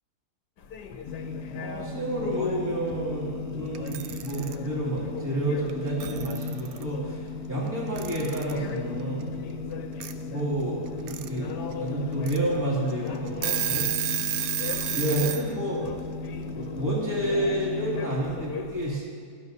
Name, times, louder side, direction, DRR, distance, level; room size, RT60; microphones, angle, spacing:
sound 1, 0.6-19.0, left 6 dB, 90° left, 1.3 m, -42 dB
sound 2, 1.1-18.3, left 3 dB, 70° left, 1.2 m, -36 dB
voice 1, 1.5-7.2 7.5-9.4 10.2-13.9 14.9-15.8 16.5-19.0, right 1 dB, 10° right, -6 dB, 2.5 m, -30 dB
Alarm / Clock, 3.7-4.5 5.7-5.8 6.0-6.8 8.0-8.6 10.0-10.1 10.9-11.3 11.7-11.8 12.2-12.4 12.9-13.0 13.3-15.4, right 10 dB, 70° right, 1.0 m, -30 dB
17.0 x 12.0 x 2.7 m, 2.2 s
omnidirectional pair, 1.7 m